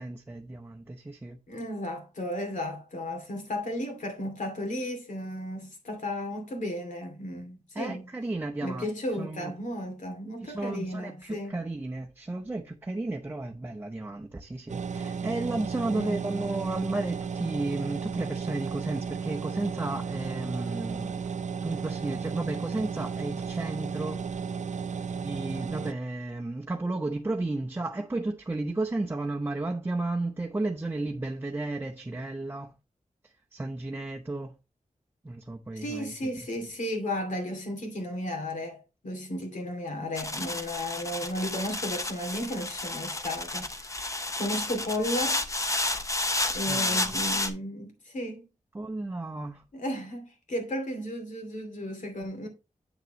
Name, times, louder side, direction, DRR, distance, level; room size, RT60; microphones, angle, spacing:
voice 1, 0.0-1.4 7.7-8.9 9.2-9.5 10.4-21.2 21.6-24.2 25.2-32.7 33.5-34.5 35.2-36.1 46.7-47.2 48.7-49.6, right 2 dB, 15° right, 0.7 m, -33 dB
voice 2, 1.5-8.1 8.6-11.5 15.9-16.3 35.7-45.4 46.5-48.5 49.7-52.5, left 1 dB, 75° left, 2.6 m, -34 dB
sound 1, 14.7-25.9, right 6 dB, 65° right, 0.5 m, -34 dB
sound 2, 40.1-47.5, left 2 dB, 25° left, 0.9 m, -31 dB
8.0 x 6.7 x 3.1 m
wide cardioid pair, 135°, 13 cm